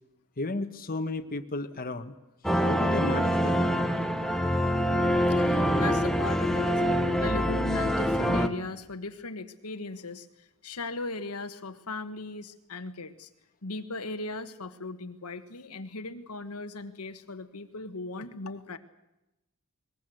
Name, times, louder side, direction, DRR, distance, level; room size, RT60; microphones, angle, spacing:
voice 1, 0.4-2.1 2.5-3.6, left 2 dB, 40° left, 6 dB, 1.3 m, -33 dB
sound 1, 2.4-8.5, equal, ahead, 1.2 m, -25 dB
voice 2, 5.3-13.3 13.6-18.8, left 3 dB, 90° left, 8 dB, 1.4 m, -38 dB
21.5 x 20.5 x 7.9 m, 0.92 s
head